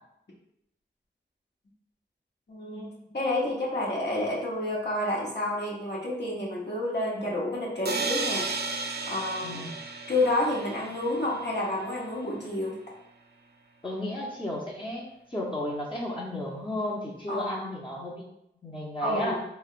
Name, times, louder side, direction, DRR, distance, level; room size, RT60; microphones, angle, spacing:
voice 1, 2.5-8.5 9.1-9.7 10.1-12.8 17.3-17.7 19.0-19.3, left 1 dB, 65° left, -5 dB, 1.0 m, -29 dB
sound 1, 7.8-11.7, right 4 dB, 60° right, 0.4 m, -33 dB
voice 2, 9.4-9.7 13.8-18.3 18.6-19.4, left 1 dB, 25° left, -6 dB, 0.7 m, -33 dB
3.2 x 2.9 x 2.4 m, 0.82 s
wide cardioid pair, 45°, 19 cm